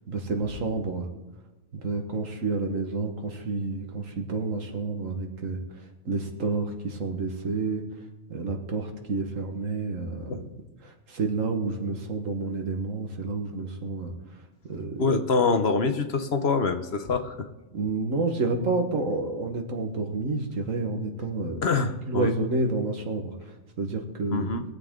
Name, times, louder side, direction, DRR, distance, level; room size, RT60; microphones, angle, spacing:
voice 1, 0.1-1.1 1.7-7.8 8.3-10.5 10.8-14.1 14.6-15.1 17.7-21.6 22.1-24.5, right 3 dB, 75° right, 3 dB, 1.9 m, -29 dB
voice 2, 15.0-17.5 21.6-22.3 24.3-24.6, left 4 dB, 55° left, 8 dB, 1.1 m, -25 dB
21.0 x 7.9 x 3.8 m, 1.1 s
omnidirectional pair, 1.4 m